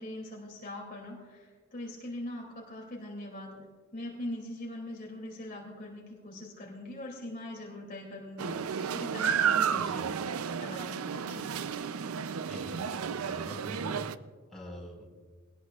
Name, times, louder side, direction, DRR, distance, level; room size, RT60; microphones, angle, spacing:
voice 1, 0.0-8.6 8.9-10.2 10.6-11.5, left 1 dB, 45° left, -1 dB, 2.7 m, -42 dB
sound 1, 8.4-14.2, right 7 dB, 90° right, 0.5 m, -32 dB
voice 2, 9.7-10.1 12.5-14.0 14.5-15.0, equal, ahead, -4 dB, 4.8 m, -45 dB
22.5 x 18.5 x 2.4 m, 1.5 s
head